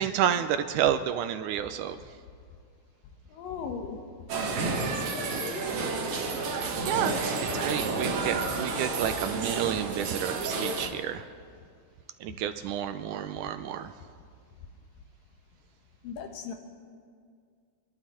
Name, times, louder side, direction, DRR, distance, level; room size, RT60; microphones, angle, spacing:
voice 1, 0.0-2.0 6.9-7.2 7.5-11.2 12.2-13.9, right 10 dB, 80° right, 9 dB, 1.9 m, -30 dB
voice 2, 3.3-4.0 4.8-5.6 16.0-16.5, left 6 dB, 80° left, 4 dB, 2.9 m, -38 dB
sound 1, 4.3-10.9, right 3 dB, 60° right, 2.5 m, -30 dB
28.0 x 11.5 x 4.3 m, 2.2 s
omnidirectional pair, 3.9 m